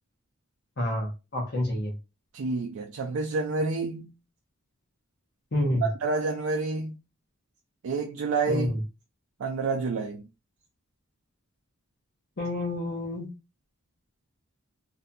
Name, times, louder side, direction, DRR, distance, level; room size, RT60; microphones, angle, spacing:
voice 1, 0.8-1.9 5.5-5.9 8.5-8.7 12.4-13.3, left 1 dB, 50° left, 0.7 m, -28 dB
voice 2, 2.3-4.1 5.8-7.0 7.8-8.8 9.4-10.2, right 3 dB, 75° right, 0.4 m, -29 dB
2.6 x 2.6 x 2.2 m
head